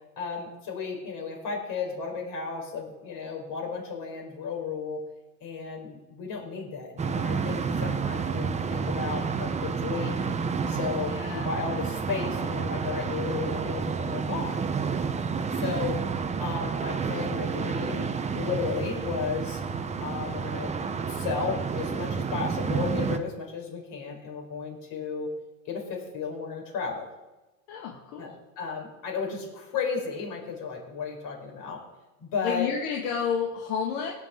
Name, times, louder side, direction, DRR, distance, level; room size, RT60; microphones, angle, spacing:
voice 1, 0.2-5.0 5.4-10.3 10.7-14.6 15.6-16.0 16.4-18.1 18.3-19.6 20.0-20.7 21.1-25.3 25.7-27.1 28.2-28.3 28.6-31.8 32.2-32.7, left 5 dB, 50° left, 1 dB, 4.4 m, -34 dB
sound 1, 7.0-23.2, right 5 dB, 15° right, 0.7 m, -30 dB
voice 2, 11.1-11.5 27.7-28.3 32.4-34.1, left 7 dB, 70° left, -1 dB, 2.0 m, -30 dB
17.5 x 9.6 x 3.7 m, 1.1 s
supercardioid pair, 125°, 44 cm